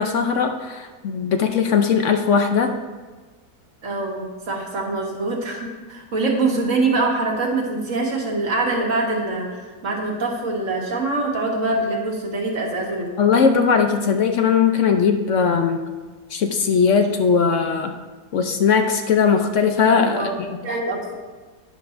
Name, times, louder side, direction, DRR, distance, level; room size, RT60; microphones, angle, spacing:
voice 1, 0.0-2.7 13.2-15.8 16.3-17.9 18.3-20.3, left 6 dB, 65° left, 6 dB, 0.8 m, -19 dB
voice 2, 3.8-13.1 20.1-21.1, right 2 dB, 50° right, 0 dB, 1.9 m, -24 dB
11.5 x 10.0 x 2.6 m, 1.3 s
omnidirectional pair, 1.7 m